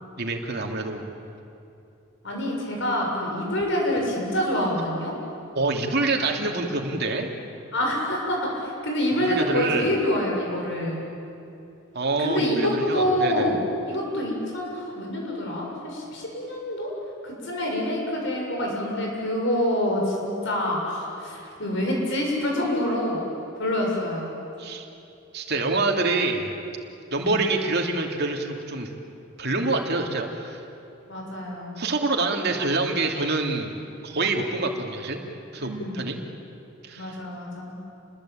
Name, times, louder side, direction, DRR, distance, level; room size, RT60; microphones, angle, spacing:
voice 1, 0.2-1.1 5.5-7.3 9.2-9.9 11.9-13.5 24.6-24.9 25.3-26.5 27.1-28.9 29.4-30.6 31.8-33.7 34.0-35.2 35.5-36.2 36.8-37.2, right 3 dB, 55° right, 2 dB, 2.8 m, -26 dB
voice 2, 2.2-5.1 7.7-11.0 12.2-16.9 17.2-23.2 23.6-24.3 27.2-27.4 31.1-31.8 35.6-36.0 37.0-37.7, left 1 dB, 60° left, -1 dB, 7.0 m, -26 dB
29.0 x 20.5 x 8.9 m, 2.7 s
head